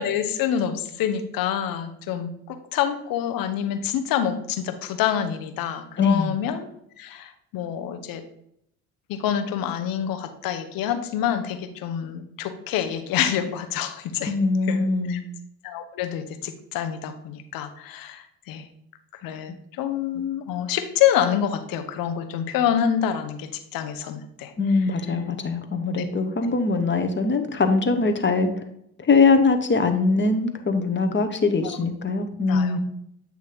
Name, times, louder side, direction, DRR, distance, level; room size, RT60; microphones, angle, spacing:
voice 1, 0.0-6.7 7.0-8.2 9.1-14.3 14.7-15.2 15.6-18.7 19.2-24.5 32.5-32.8, left 9 dB, 65° left, 8 dB, 1.0 m, -27 dB
voice 2, 6.0-6.4 14.3-15.2 24.6-28.6 29.0-32.8, left 3 dB, 30° left, 7 dB, 1.1 m, -22 dB
8.2 x 3.1 x 5.2 m, 0.74 s
hypercardioid pair, 55°, 37 cm